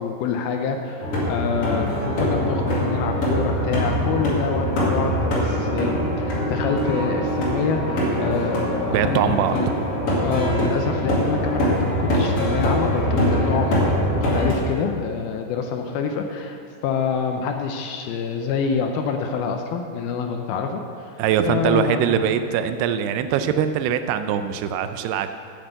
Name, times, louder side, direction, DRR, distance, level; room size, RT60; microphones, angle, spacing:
voice 1, 0.0-9.7 10.2-21.2 21.5-22.3, left 5 dB, 80° left, 4 dB, 2.4 m, -27 dB
galoping seq chaos, 1.0-14.5, equal, 45° left, 2.4 m, -23 dB
voice 2, 8.9-9.8 21.2-25.3, right 8 dB, 85° right, 10 dB, 2.5 m, -22 dB
8.8 x 8.2 x 7.9 m, 2.3 s
omnidirectional pair, 4.8 m